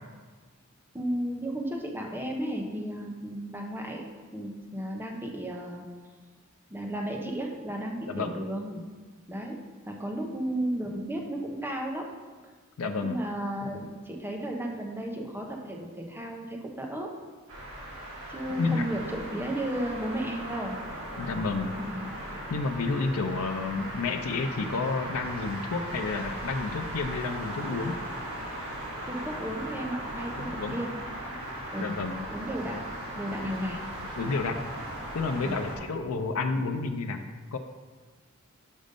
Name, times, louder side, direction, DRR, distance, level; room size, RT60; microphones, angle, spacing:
voice 1, 0.9-4.0 4.3-5.9 6.7-8.8 9.3-9.6 9.9-12.1 13.0-17.1 18.3-20.8 21.8-22.1 29.1-30.9 31.7-31.9 32.3-32.8 33.2-33.8 35.4-35.6, right 1 dB, 10° right, 1 dB, 0.8 m, -34 dB
voice 2, 12.8-13.2 18.6-18.9 21.2-21.7 22.5-27.9 30.4-30.8 31.8-32.3 34.2-34.6 35.1-37.2 37.5-37.6, left 4 dB, 75° left, 6 dB, 0.5 m, -30 dB
sound 1, 17.5-35.8, right 1 dB, 70° right, 2.0 m, -38 dB
5.3 x 5.1 x 5.2 m, 1.4 s
head